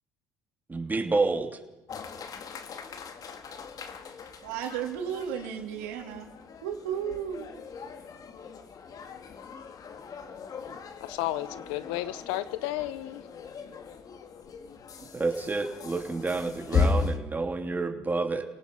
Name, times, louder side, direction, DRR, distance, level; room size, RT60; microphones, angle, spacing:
voice 1, 0.7-1.6 15.1-18.4, right 3 dB, 20° right, 5 dB, 3.1 m, -29 dB
sound 1, 1.9-17.2, left 4 dB, 45° left, 2.1 m, -36 dB
voice 2, 4.4-6.3 6.6-7.5, right 8 dB, 80° right, 3 dB, 3.4 m, -34 dB
voice 3, 11.0-13.2, left 15 dB, 80° left, 15 dB, 1.1 m, -32 dB
28.5 x 18.5 x 5.5 m, 1.0 s
hypercardioid pair, 70°, 8 cm